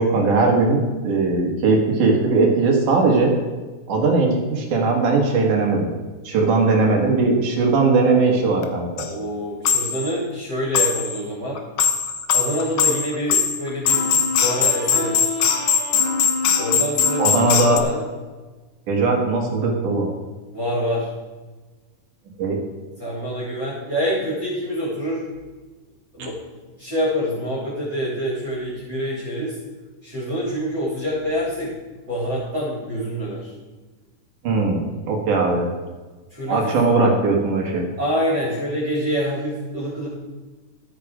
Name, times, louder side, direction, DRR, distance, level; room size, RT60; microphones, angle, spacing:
voice 1, 0.0-3.3 3.9-5.9 6.2-9.1 17.2-17.8 18.9-20.1 22.4-22.6 34.4-35.7 36.5-37.8, right 3 dB, 75° right, 0 dB, 3.2 m, -19 dB
sound 1, 8.6-8.7 9.0-9.1 9.6-10.1 10.7-11.2 11.5-17.8, left 6 dB, 70° left, 1.2 m, -20 dB
voice 2, 9.0-11.6 12.3-15.2 16.6-18.1 20.5-21.1 23.0-25.2 26.1-26.4 26.8-29.6 30.0-31.7 32.1-33.5 36.3-36.8 38.0-40.1, equal, 30° right, -6 dB, 3.8 m, -26 dB
13.0 x 8.8 x 5.0 m, 1.3 s
omnidirectional pair, 3.7 m